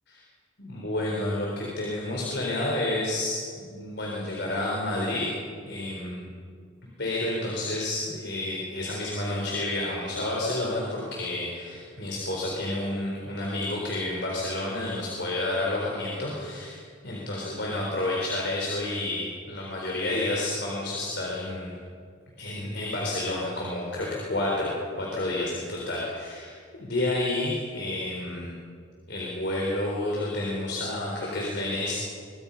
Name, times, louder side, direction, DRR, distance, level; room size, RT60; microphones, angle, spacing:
voice 1, 0.6-5.3 5.6-6.3 7.0-21.7 22.4-28.5 29.1-31.9, left 1 dB, 60° left, -3 dB, 4.5 m, -30 dB
23.5 x 23.5 x 5.7 m, 2.2 s
head